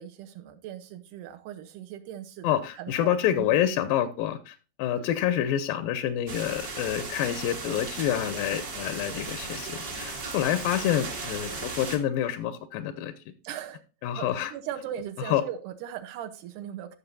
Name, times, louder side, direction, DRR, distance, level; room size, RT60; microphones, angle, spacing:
voice 1, 0.0-3.1 3.4-3.6 5.0-5.1 8.9-9.2 13.4-13.8 14.2-17.0, right 10 dB, 75° right, 8 dB, 2.3 m, -39 dB
voice 2, 2.4-13.1 14.0-14.5 15.2-15.4, left 11 dB, 85° left, 11 dB, 2.4 m, -27 dB
sound 1, 6.3-12.0, right 3 dB, 45° right, 1.3 m, -36 dB
14.0 x 6.6 x 2.7 m, 0.34 s
omnidirectional pair, 4.1 m